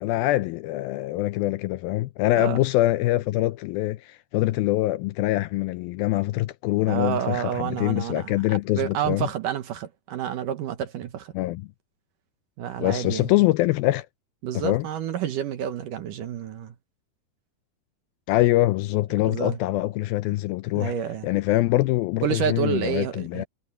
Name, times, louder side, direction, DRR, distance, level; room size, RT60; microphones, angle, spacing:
voice 1, 0.0-9.3 11.3-11.7 12.8-14.1 14.5-14.8 18.3-20.9 21.2-23.4, left 17 dB, 80° left, 2.2 m, -24 dB
voice 2, 6.9-8.4 8.7-11.3 12.6-13.3 14.4-16.7 19.3-19.6 20.8-21.3 22.2-23.5, right 9 dB, 65° right, 2.4 m, -29 dB
omnidirectional pair, 4.6 m